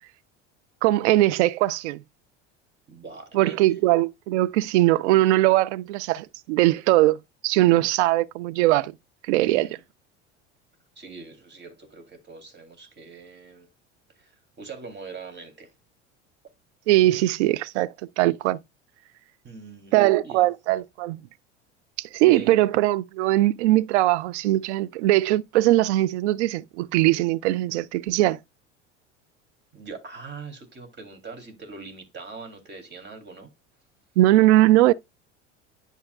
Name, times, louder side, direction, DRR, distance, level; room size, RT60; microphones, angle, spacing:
voice 1, 0.8-2.0 3.3-7.2 7.4-8.9 9.3-9.7 16.9-18.6 19.9-21.2 22.0-28.4 34.2-34.9, right 16 dB, 70° right, 0.6 m, -20 dB
voice 2, 2.9-3.7 9.4-9.8 11.0-13.7 14.1-14.3 14.6-15.7 19.4-20.5 22.3-22.6 29.7-33.5, right 4 dB, 30° right, 2.8 m, -42 dB
11.0 x 4.2 x 2.3 m
hypercardioid pair, 75°, 35 cm